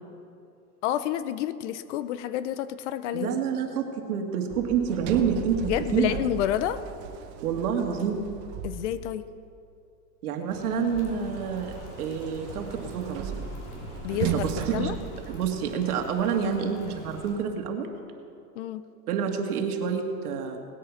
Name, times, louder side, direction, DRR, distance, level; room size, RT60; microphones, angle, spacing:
voice 1, 0.8-3.4 5.6-6.8 8.6-9.2 14.0-15.0 18.6-18.9, left 11 dB, 50° left, 15 dB, 0.7 m, -29 dB
voice 2, 3.1-6.2 7.4-8.3 10.2-13.5 14.3-15.0 15.3-17.9 19.1-20.6, right 7 dB, 75° right, 3 dB, 2.2 m, -28 dB
Sliding door, 4.5-9.3 10.9-15.9, right 8 dB, 35° right, 0.9 m, -36 dB
sound 1, 10.5-17.3, left 2 dB, 80° left, 4.0 m, -45 dB
18.5 x 8.5 x 6.5 m, 2.5 s
supercardioid pair, 145°, 45 cm